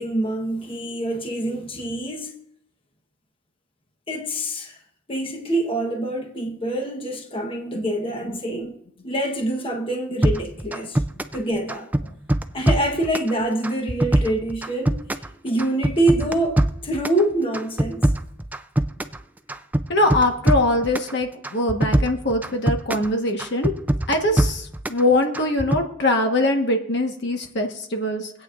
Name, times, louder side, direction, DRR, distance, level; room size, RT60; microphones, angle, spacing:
voice 1, 0.0-2.3 4.1-4.8 5.1-8.8 9.0-11.0 11.3-11.9 12.5-15.0 15.4-18.1, right 1 dB, 25° left, 1.1 m, -25 dB
sound 1, 10.2-11.4 11.7-13.3 13.6-15.3 15.6-17.2 17.5-19.2 19.5-21.1 21.4-23.1 23.4-25.0 25.3-25.8, right 1 dB, 10° right, 0.4 m, -22 dB
voice 2, 19.9-23.7 24.1-28.3, left 1 dB, 60° left, 1.3 m, -22 dB
24.0 x 8.6 x 2.5 m
head